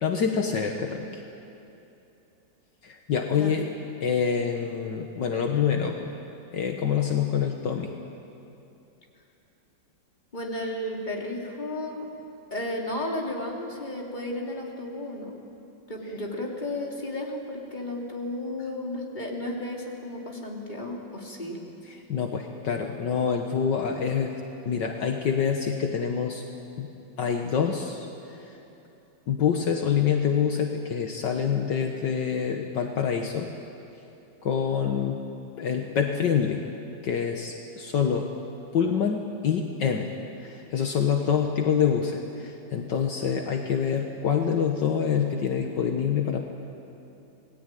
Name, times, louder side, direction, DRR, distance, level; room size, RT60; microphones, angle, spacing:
voice 1, 0.0-1.2 2.8-3.7 4.0-6.1 6.5-7.9 22.1-24.4 24.7-26.4 26.8-26.9 27.2-28.6 29.3-33.5 34.4-35.2 35.6-36.6 37.0-38.3 38.7-40.1 40.4-46.4, left 7 dB, 65° left, 3 dB, 1.9 m, -26 dB
voice 2, 3.3-3.6 10.3-12.1 12.5-15.4 15.9-21.6, left 1 dB, 20° left, -1 dB, 3.5 m, -33 dB
27.5 x 20.0 x 9.3 m, 2.9 s
omnidirectional pair, 2.1 m